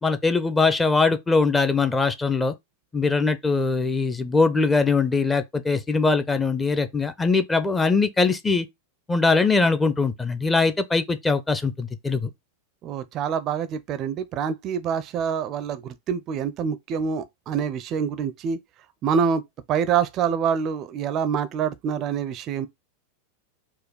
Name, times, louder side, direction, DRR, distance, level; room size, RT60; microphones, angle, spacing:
voice 1, 0.0-2.5 2.9-8.7 9.1-12.3, left 4 dB, 10° left, 0.6 m, -22 dB
voice 2, 12.8-18.6 19.0-19.4 19.7-22.7, right 7 dB, 35° right, 0.4 m, -26 dB
4.4 x 2.3 x 4.6 m
figure-of-eight pair, 90°, 0 cm